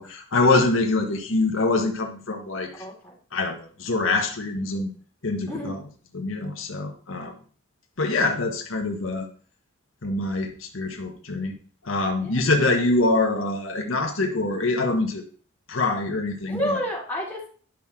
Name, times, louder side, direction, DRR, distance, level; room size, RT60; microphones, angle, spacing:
voice 1, 0.0-2.8 3.3-4.9 5.2-5.8 6.1-7.3 8.0-9.3 10.0-11.6 11.8-15.2 15.7-16.8, left 2 dB, 80° left, 2 dB, 1.4 m, -24 dB
voice 2, 2.8-3.2 5.5-5.7 12.2-12.5 16.5-17.5, equal, 10° left, -4 dB, 2.9 m, -30 dB
10.5 x 6.0 x 3.8 m, 0.42 s
head